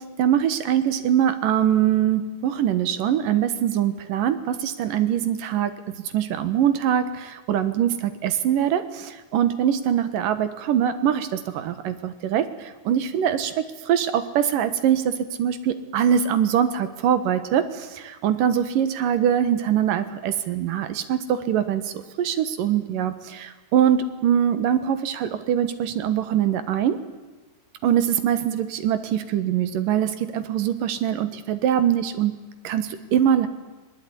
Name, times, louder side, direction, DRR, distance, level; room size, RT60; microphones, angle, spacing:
voice 1, 0.2-5.7 6.0-27.0 27.8-32.3 32.6-33.5, right 9 dB, 80° right, 11 dB, 3.0 m, -23 dB
21.5 x 20.0 x 9.9 m, 1.2 s
omnidirectional pair, 3.9 m